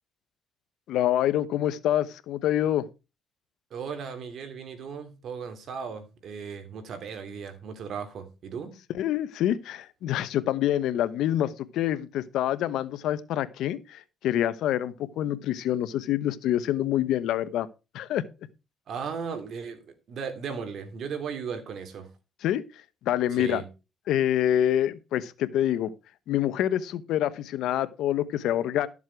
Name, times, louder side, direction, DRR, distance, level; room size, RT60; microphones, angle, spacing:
voice 1, 0.9-2.8 8.9-17.7 17.9-18.2 22.4-22.6 23.0-23.6 24.1-25.9 26.3-28.9, left 12 dB, 85° left, 0.9 m, -26 dB
voice 2, 3.7-8.7 18.9-22.1 23.3-23.7, right 6 dB, 65° right, 2.9 m, -36 dB
13.0 x 7.3 x 4.6 m
cardioid pair, 90°, 0 cm